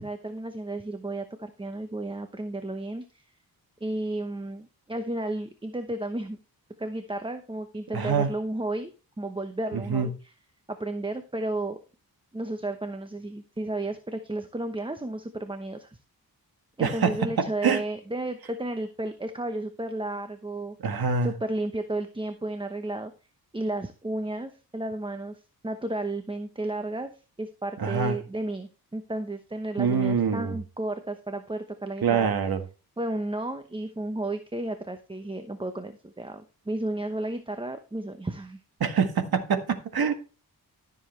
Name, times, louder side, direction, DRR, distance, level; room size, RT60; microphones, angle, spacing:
voice 1, 0.0-3.2 3.8-6.4 6.8-8.9 9.2-10.3 10.8-11.8 12.3-16.0 16.8-20.8 21.2-23.1 23.5-27.1 27.4-32.3 33.0-38.6, right 2 dB, 15° right, 0.9 m, -33 dB
voice 2, 7.9-8.3 9.9-10.1 16.8-17.2 17.6-17.8 20.8-21.3 27.8-28.2 29.8-30.6 32.0-32.6 38.8-40.1, right 6 dB, 70° right, 1.7 m, -25 dB
13.5 x 7.1 x 3.3 m
cardioid pair, 85°, 37 cm